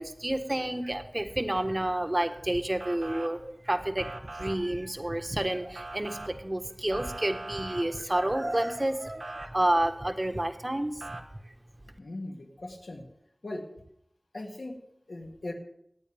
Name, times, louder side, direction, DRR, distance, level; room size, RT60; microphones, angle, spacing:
voice 1, 0.0-11.2, right 1 dB, 30° right, 7 dB, 1.3 m, -30 dB
Motor vehicle (road) / Siren, 2.8-3.3 4.0-4.6 5.7-6.3 6.9-7.8 9.2-9.5 11.0-11.2, right 2 dB, 90° right, 1.3 m, -40 dB
voice 2, 12.0-13.1 13.4-13.7 14.3-14.8 15.1-15.5, left 2 dB, 80° left, 0 dB, 2.4 m, -39 dB
23.5 x 9.2 x 3.5 m, 0.71 s
wide cardioid pair, 45°, 0 cm